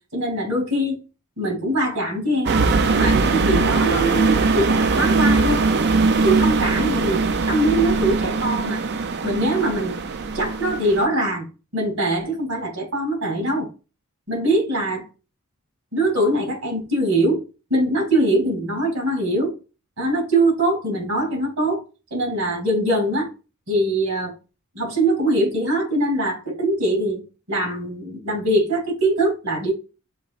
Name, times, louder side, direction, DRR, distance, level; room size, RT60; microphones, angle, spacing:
voice 1, 0.1-1.0 1.4-2.6 2.8-5.6 6.2-8.8 9.2-9.9 10.3-11.5 11.7-13.7 14.3-15.0 15.9-17.4 17.7-19.5 20.0-21.8 22.1-23.3 23.7-24.3 24.7-27.2 27.5-29.7, right 1 dB, 80° right, 2.7 m, -22 dB
sound 1, 2.5-11.1, right 3 dB, 50° right, 0.5 m, -20 dB
6.9 x 2.9 x 2.4 m
head